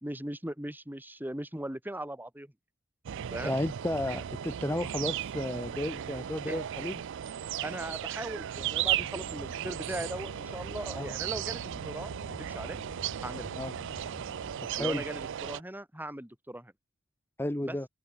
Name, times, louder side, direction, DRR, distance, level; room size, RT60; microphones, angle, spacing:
voice 1, 0.0-2.5 3.3-3.6 6.5-6.6 7.4-12.8 13.2-13.5 14.8-16.7 17.6-17.8, right 1 dB, 10° right, 3.0 m, -39 dB
sound 1, 3.1-15.6, right 10 dB, 60° right, 0.4 m, -36 dB
voice 2, 3.4-7.0 11.0-11.1 13.6-13.7 14.7-15.0 17.4-17.9, left 1 dB, 10° left, 1.1 m, -33 dB
sound 2, 8.6-14.9, left 2 dB, 70° left, 1.5 m, -48 dB
open air
head